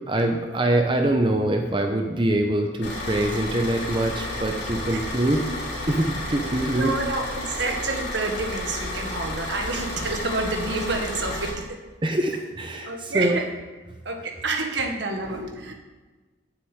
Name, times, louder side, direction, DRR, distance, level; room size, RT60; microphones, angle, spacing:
voice 1, 0.1-5.4 5.9-7.0 12.0-13.4, right 1 dB, 25° right, 3 dB, 0.8 m, -24 dB
Car / Idling, 2.8-11.5, left 1 dB, 70° left, 3.8 m, -32 dB
voice 2, 6.8-11.8 12.3-12.4 12.7-13.5 14.0-15.7, right 3 dB, 65° right, 3 dB, 1.5 m, -29 dB
7.9 x 6.9 x 8.3 m, 1.3 s
head